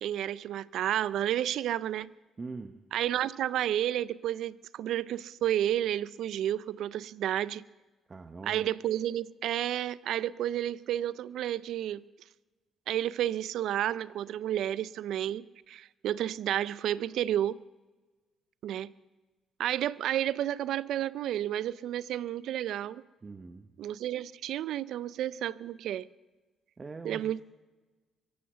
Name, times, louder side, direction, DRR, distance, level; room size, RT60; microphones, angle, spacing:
voice 1, 0.0-2.1 2.9-7.6 8.4-12.0 12.9-17.6 18.6-18.9 19.6-23.0 23.8-26.1 27.0-27.4, right 11 dB, 80° right, 0.5 m, -31 dB
voice 2, 2.4-2.8 8.1-8.6 23.2-23.7 26.8-27.4, right 4 dB, 30° right, 0.9 m, -42 dB
24.0 x 8.9 x 6.9 m
cardioid pair, 90°, 0 cm